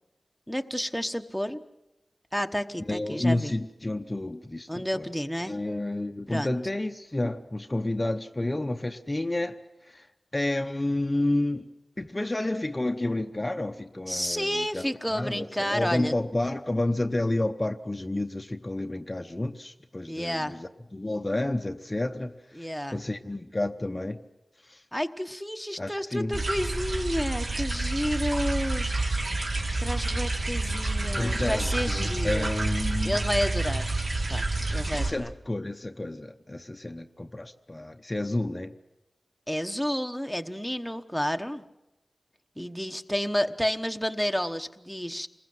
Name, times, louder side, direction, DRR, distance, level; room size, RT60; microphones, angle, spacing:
voice 1, 0.5-1.6 2.3-3.5 4.7-5.5 6.3-6.5 14.1-16.1 20.1-20.6 22.6-23.0 24.9-28.9 29.8-32.5 33.0-33.9 34.3-34.5 34.7-35.3 39.5-41.6 42.6-45.3, equal, ahead, 5 dB, 1.1 m, -30 dB
voice 2, 2.9-5.1 5.5-10.1 10.3-11.7 12.0-24.2 24.6-24.8 25.8-26.4 31.2-33.2 34.9-38.8, left 1 dB, 20° left, 5 dB, 0.8 m, -30 dB
sound 1, 26.3-35.1, right 2 dB, 60° right, 3.5 m, -28 dB
27.0 x 21.0 x 7.9 m, 0.94 s
wide cardioid pair, 105°, 0 cm